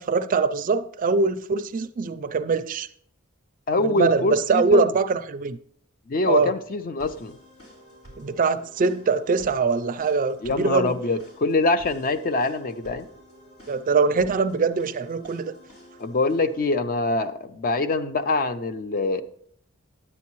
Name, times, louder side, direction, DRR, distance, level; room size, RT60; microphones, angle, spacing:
voice 1, 0.0-2.9 3.8-5.6 6.3-6.5 8.2-10.9 13.7-15.5, right 4 dB, 40° right, 0.4 m, -23 dB
voice 2, 3.7-4.9 6.1-7.4 10.4-13.1 16.0-19.2, left 3 dB, 45° left, 0.5 m, -24 dB
sound 1, 7.0-16.6, equal, 75° left, 3.5 m, -49 dB
9.8 x 8.3 x 3.0 m
head